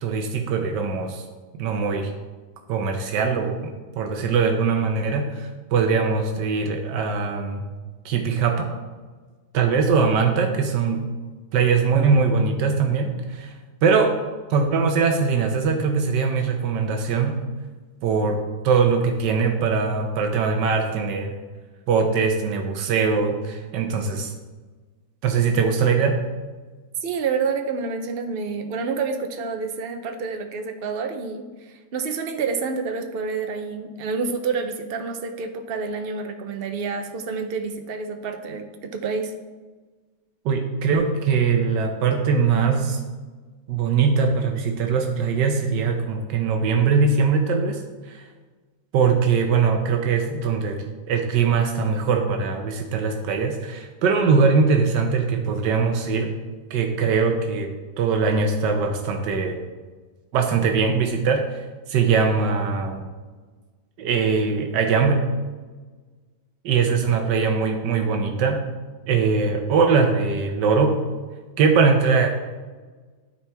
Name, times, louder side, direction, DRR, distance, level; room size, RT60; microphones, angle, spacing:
voice 1, 0.0-1.2 1.6-2.1 2.7-7.6 8.0-8.7 9.5-11.0 11.5-13.5 13.8-14.1 14.5-17.4 18.0-18.4 18.6-21.3 21.9-24.3 25.2-26.2 40.4-43.0 43.7-47.8 48.9-50.8 51.1-56.3 56.7-57.7 58.0-59.6 60.3-61.4 61.9-63.0 64.0-65.2 66.6-68.6 69.1-71.0 71.6-72.3, right 5 dB, 90° right, 3 dB, 1.5 m, -21 dB
voice 2, 27.0-39.3, right 5 dB, 50° right, 6 dB, 0.7 m, -28 dB
12.5 x 4.4 x 3.5 m, 1.3 s
omnidirectional pair, 1.8 m